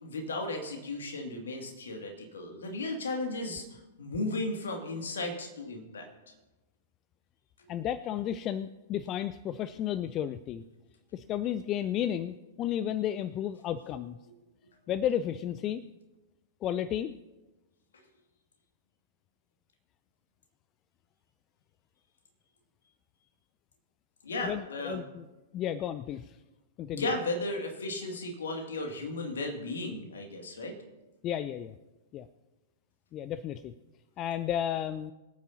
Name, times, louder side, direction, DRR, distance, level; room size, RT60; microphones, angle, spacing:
voice 1, 0.0-6.1 24.2-25.0 26.9-30.8, left 2 dB, 65° left, 3 dB, 2.2 m, -35 dB
voice 2, 7.7-10.6 11.1-14.2 14.9-15.9 16.6-17.1 24.4-25.2 25.5-26.4 26.8-27.1 31.2-31.7 32.1-32.3 33.1-33.7 34.2-35.1, left 10 dB, 30° left, 15 dB, 0.4 m, -33 dB
24.0 x 9.0 x 2.8 m, 1.1 s
figure-of-eight pair, 100°, 0 cm